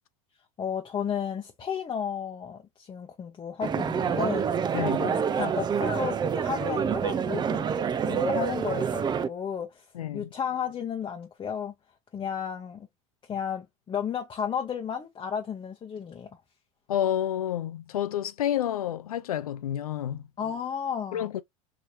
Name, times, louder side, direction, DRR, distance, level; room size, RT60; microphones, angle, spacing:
voice 1, 0.6-7.7 8.1-9.9 10.1-11.7 12.1-12.9 13.3-16.3 20.4-21.3, left 7 dB, 25° left, 0.8 m, -33 dB
sound 1, 3.6-9.3, right 7 dB, 25° right, 0.5 m, -27 dB
voice 2, 4.7-5.1 9.9-10.3 16.9-20.2 21.1-21.4, left 11 dB, 90° left, 0.5 m, -29 dB
4.8 x 2.8 x 2.7 m
hypercardioid pair, 90°, 18 cm